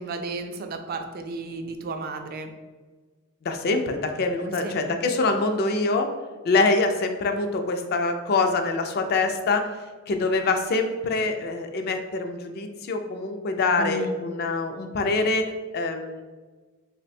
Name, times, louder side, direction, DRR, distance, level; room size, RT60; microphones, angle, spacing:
voice 1, 0.0-2.5 4.4-5.0 13.8-14.2, right 3 dB, 45° right, 6 dB, 0.3 m, -33 dB
voice 2, 3.4-6.1 6.4-9.7 10.1-16.2, left 3 dB, 45° left, 6 dB, 0.3 m, -25 dB
3.3 x 2.2 x 4.1 m, 1.4 s
head